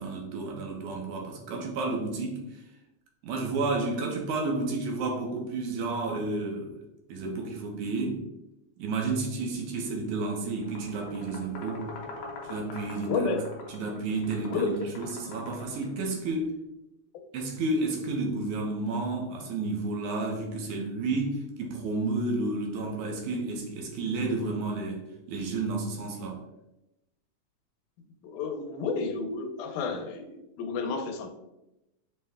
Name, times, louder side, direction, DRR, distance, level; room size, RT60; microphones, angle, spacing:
voice 1, 0.0-2.6 3.2-6.8 7.1-8.2 8.8-11.9 12.4-13.4 13.7-16.5 17.3-26.4, right 3 dB, 75° right, 1 dB, 2.1 m, -31 dB
sound 1, 10.6-16.3, left 3 dB, 70° left, 1.6 m, -43 dB
voice 2, 13.1-13.4 14.5-14.7 28.2-31.3, left 4 dB, 85° left, 5 dB, 2.1 m, -31 dB
5.8 x 2.1 x 3.4 m, 0.91 s
omnidirectional pair, 3.5 m